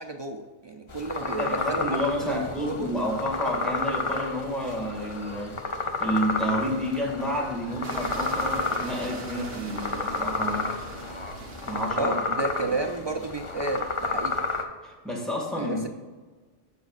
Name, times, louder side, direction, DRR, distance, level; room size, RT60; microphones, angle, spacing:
voice 1, 0.0-2.9 12.0-14.4 15.6-15.9, right 2 dB, 40° right, 0.4 m, -32 dB
sound 1, 0.9-14.6, left 3 dB, 35° left, 0.6 m, -31 dB
voice 2, 1.2-5.6 6.0-10.7 11.7-12.2 14.8-15.9, equal, ahead, 1.9 m, -30 dB
sound 2, 7.8-14.6, right 3 dB, 70° right, 1.0 m, -40 dB
14.5 x 5.1 x 2.4 m
omnidirectional pair, 1.1 m